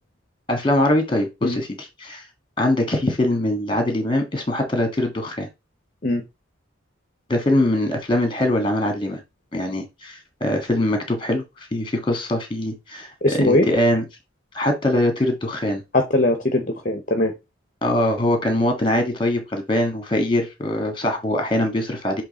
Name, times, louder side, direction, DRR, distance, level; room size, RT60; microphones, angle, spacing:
voice 1, 0.5-2.2 2.6-5.5 7.3-9.2 9.5-14.0 14.5-15.8 17.8-22.2, left 1 dB, 25° left, 1.5 m, -22 dB
voice 2, 13.2-13.7 15.9-17.3, left 1 dB, 40° left, 0.8 m, -20 dB
7.3 x 3.1 x 4.1 m
head